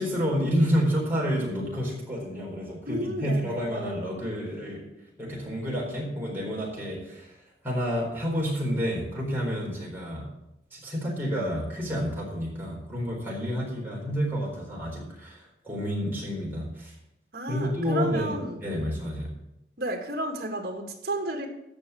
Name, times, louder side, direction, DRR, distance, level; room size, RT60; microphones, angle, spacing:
voice 1, 0.0-4.9 5.2-7.4 7.6-10.3 10.7-16.9 17.5-19.3, equal, 10° right, -4 dB, 4.2 m, -29 dB
voice 2, 2.9-3.6 17.3-18.6 19.8-21.5, right 1 dB, 55° right, 3 dB, 2.2 m, -32 dB
14.5 x 5.7 x 7.1 m, 0.85 s
head